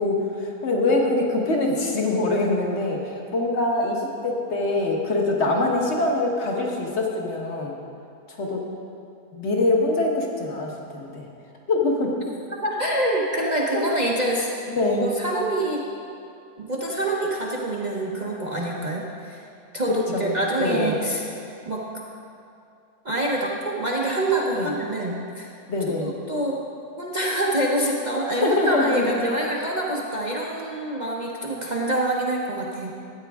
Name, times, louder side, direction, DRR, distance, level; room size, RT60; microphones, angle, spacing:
voice 1, 0.0-7.7 8.3-8.6 9.3-11.3 11.7-12.1 13.7-13.8 14.7-15.1 19.9-20.9 24.5-24.7 25.7-26.1 28.3-29.1, left 2 dB, 50° left, 0 dB, 1.5 m, -24 dB
voice 2, 12.6-14.5 15.0-15.8 16.6-19.4 19.7-21.2 21.6-21.9 23.0-25.5 26.0-26.6 27.0-32.9, right 1 dB, 35° right, -3 dB, 0.8 m, -26 dB
13.5 x 8.8 x 3.5 m, 2.5 s
omnidirectional pair, 1.6 m